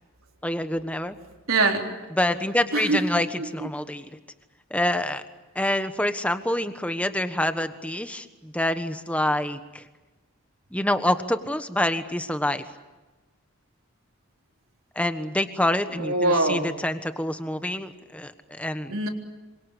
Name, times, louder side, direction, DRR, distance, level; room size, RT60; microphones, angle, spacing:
voice 1, 0.4-1.2 2.2-3.3 3.5-4.1 4.7-5.2 5.5-9.8 10.7-12.6 14.9-18.9, left 1 dB, 5° left, 9 dB, 1.2 m, -26 dB
voice 2, 1.5-1.9 2.7-3.0 3.4-3.7 15.9-16.7 18.9-19.1, right 2 dB, 80° right, 2 dB, 3.8 m, -23 dB
27.0 x 24.5 x 8.5 m, 1.2 s
head